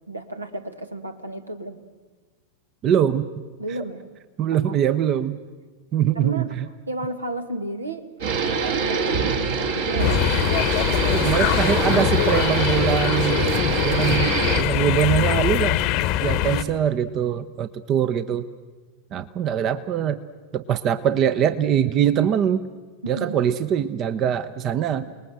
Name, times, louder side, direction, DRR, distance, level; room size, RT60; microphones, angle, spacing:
voice 1, 0.1-1.8 3.6-4.0 4.5-4.8 6.1-6.5 6.9-10.2 23.0-23.4 25.0-25.1, right 2 dB, 80° right, 9 dB, 1.6 m, -33 dB
voice 2, 2.8-3.3 4.4-5.4 5.9-6.7 11.1-15.8 16.2-18.5 19.1-20.3 20.5-22.7 23.1-25.1, right 9 dB, 35° right, 13 dB, 0.8 m, -23 dB
sound 1, 8.2-14.6, right 5 dB, 55° right, 2.4 m, -24 dB
sound 2, 10.0-16.6, left 13 dB, 40° left, 1.0 m, -22 dB
29.0 x 20.0 x 7.9 m, 1.4 s
figure-of-eight pair, 90°, 0 cm